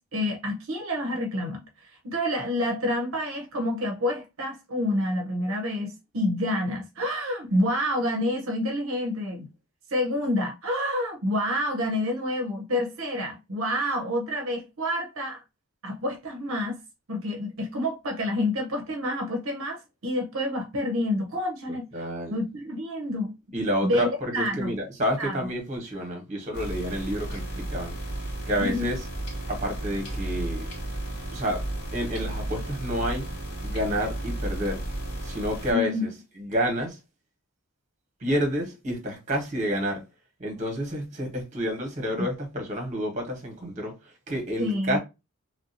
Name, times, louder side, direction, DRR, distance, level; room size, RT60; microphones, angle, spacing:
voice 1, 0.0-9.5 9.9-15.4 15.8-16.8 17.1-23.3 23.8-24.7 25.2-25.4 28.6-29.0 35.7-36.0 44.6-45.0, left 1 dB, 65° right, 0.7 m, -28 dB
voice 2, 21.7-22.4 23.5-28.0 28.5-29.0 29.5-30.7 31.3-31.6 31.9-33.3 33.6-34.8 35.2-36.1 36.4-37.0 38.2-40.0 40.4-45.0, equal, 35° right, 1.1 m, -29 dB
sound 1, 26.5-35.7, right 1 dB, 50° left, 2.1 m, -33 dB
3.2 x 2.6 x 2.7 m
head